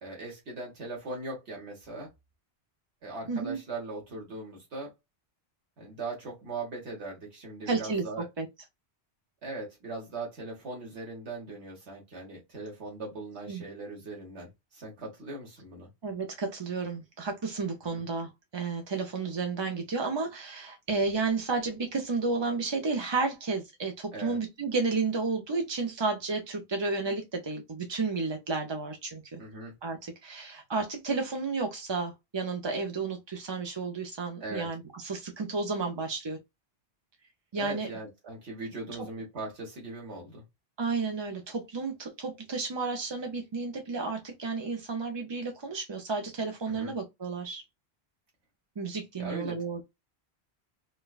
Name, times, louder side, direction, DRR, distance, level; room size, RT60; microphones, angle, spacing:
voice 1, 0.0-2.1 3.0-4.9 5.8-8.3 9.4-15.9 17.9-18.0 24.1-24.4 29.4-29.7 34.4-34.7 37.5-40.4 46.7-46.9 49.1-49.6, right 2 dB, 90° right, 1.5 m, -39 dB
voice 2, 3.3-3.6 7.7-8.0 8.4-8.5 13.5-13.6 16.0-29.4 29.8-36.4 37.5-37.9 39.0-39.1 40.8-47.6 48.8-49.8, right 4 dB, 35° right, 0.4 m, -32 dB
4.3 x 2.2 x 2.3 m
omnidirectional pair, 1.1 m